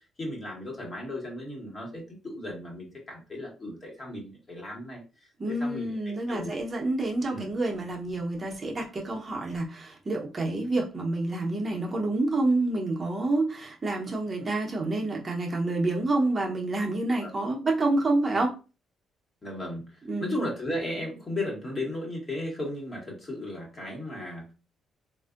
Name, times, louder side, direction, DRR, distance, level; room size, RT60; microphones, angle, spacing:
voice 1, 0.2-5.0 5.5-6.6 7.3-7.5 17.2-17.3 19.4-19.8 20.2-24.5, left 1 dB, 35° left, -1 dB, 1.4 m, -35 dB
voice 2, 5.4-18.5 20.1-20.3, right 2 dB, 30° right, 0 dB, 0.8 m, -28 dB
3.5 x 2.5 x 2.4 m, 0.32 s
cardioid pair, 90°, 0 cm